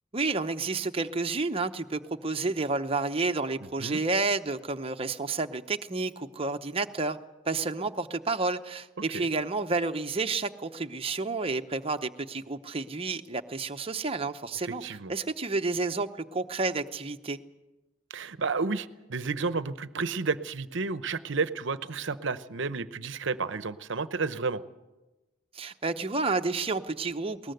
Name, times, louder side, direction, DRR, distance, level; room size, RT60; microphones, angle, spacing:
voice 1, 0.1-7.2 7.5-14.8 15.1-17.4 25.5-27.5, right 3 dB, 25° right, 7 dB, 0.8 m, -30 dB
voice 2, 14.6-15.1 18.1-24.6, right 4 dB, 60° right, 14 dB, 0.8 m, -31 dB
21.0 x 19.5 x 7.9 m, 1.1 s
head